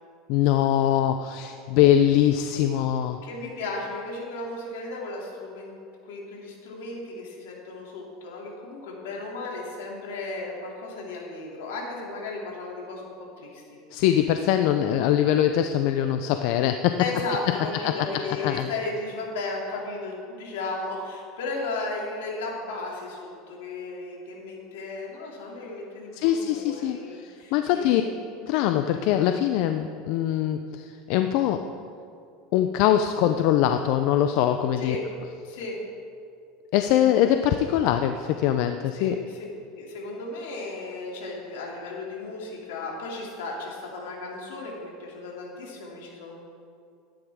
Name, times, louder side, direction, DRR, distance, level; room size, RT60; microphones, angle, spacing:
voice 1, 0.3-3.2 13.9-17.0 17.5-17.6 17.8-17.9 18.4-18.7 26.1-28.0 28.4-31.7 32.5-35.0 35.5-35.6 36.7-39.2, left 11 dB, 65° left, 8 dB, 0.5 m, -23 dB
voice 2, 3.2-5.7 6.0-13.8 17.0-28.1 34.8-35.0 35.4-35.8 39.0-39.5 39.7-46.4, left 3 dB, 85° left, -2 dB, 2.6 m, -35 dB
13.5 x 10.5 x 3.6 m, 2.4 s
supercardioid pair, 125°, 0 cm